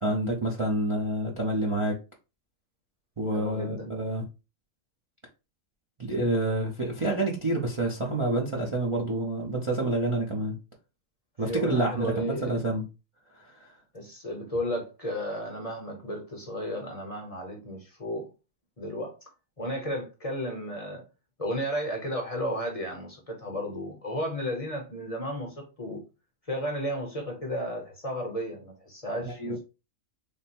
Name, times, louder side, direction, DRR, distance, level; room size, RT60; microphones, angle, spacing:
voice 1, 0.0-2.0 3.2-4.2 6.0-10.6 11.4-12.8 13.3-13.7 29.2-29.6, right 1 dB, 30° right, 0.6 m, -28 dB
voice 2, 3.3-3.9 11.4-12.6 13.9-18.3 18.8-19.2 19.6-21.0 21.4-26.0 26.5-29.6, equal, 30° left, 0.9 m, -33 dB
3.4 x 2.2 x 4.3 m
omnidirectional pair, 1.3 m